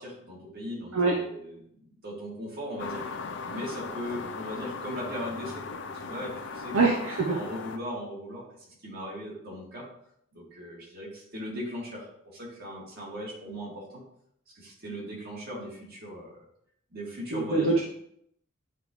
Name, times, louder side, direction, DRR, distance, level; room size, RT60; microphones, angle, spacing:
voice 1, 0.0-3.1 3.5-6.9 7.2-8.5 8.8-9.9 10.3-14.0 14.5-16.4 16.9-17.8, equal, 45° right, -4 dB, 2.2 m, -38 dB
sound 1, 2.8-7.8, left 4 dB, 55° left, 0.5 m, -38 dB
voice 2, 6.7-7.4 17.3-17.8, right 3 dB, 75° right, 0 dB, 0.7 m, -24 dB
9.7 x 3.7 x 3.1 m, 0.71 s
head